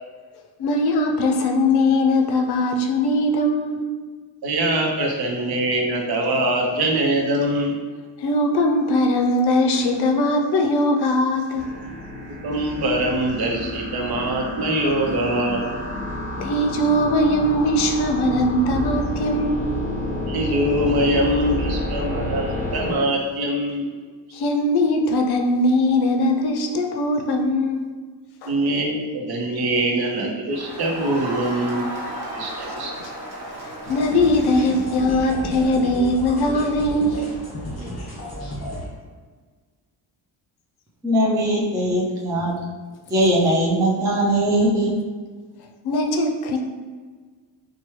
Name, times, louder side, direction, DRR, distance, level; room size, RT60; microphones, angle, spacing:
voice 1, 0.6-3.8 8.2-11.7 16.4-19.7 24.3-27.9 28.4-28.6 33.0-33.1 33.5-37.3 45.8-46.6, left 1 dB, 65° left, 4 dB, 0.5 m, -20 dB
voice 2, 4.4-7.7 12.4-15.6 20.3-23.9 28.5-31.9 32.4-32.9, right 1 dB, 60° right, 0 dB, 0.8 m, -23 dB
sound 1, 11.5-22.9, left 1 dB, 20° left, 1.0 m, -29 dB
Crowd, 30.5-35.3, right 1 dB, 35° right, 1.3 m, -34 dB
sound 2, 33.8-38.9, equal, 35° left, 1.5 m, -33 dB
voice 3, 41.0-42.6 43.1-44.9, right 1 dB, 10° right, -4 dB, 0.3 m, -20 dB
4.4 x 2.2 x 3.1 m, 1.5 s
cardioid pair, 155°, 43 cm